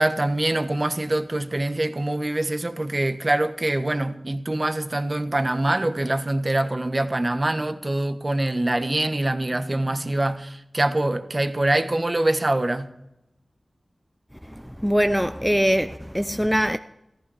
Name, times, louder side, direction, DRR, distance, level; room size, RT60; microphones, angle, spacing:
voice 1, 0.0-12.9, right 1 dB, 35° right, 1.2 m, -24 dB
voice 2, 14.6-16.8, equal, ahead, 0.5 m, -22 dB
14.0 x 14.0 x 4.9 m
wide cardioid pair, 55°, 0 cm